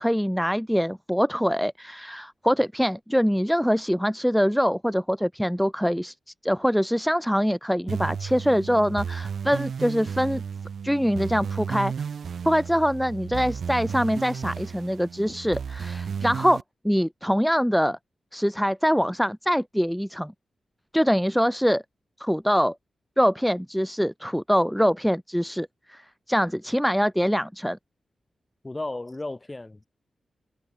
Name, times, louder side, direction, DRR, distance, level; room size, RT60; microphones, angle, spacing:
voice 1, 0.0-6.1 6.4-10.4 10.8-11.9 12.4-18.0 18.3-20.3 20.9-21.8 22.2-22.8 23.2-27.8, equal, ahead, 1.9 m, -24 dB
sound 1, 7.9-16.6, right 7 dB, 75° right, 1.5 m, -33 dB
voice 2, 28.6-29.9, left 2 dB, 20° left, 6.1 m, -34 dB
wide cardioid pair, 90°, 0 cm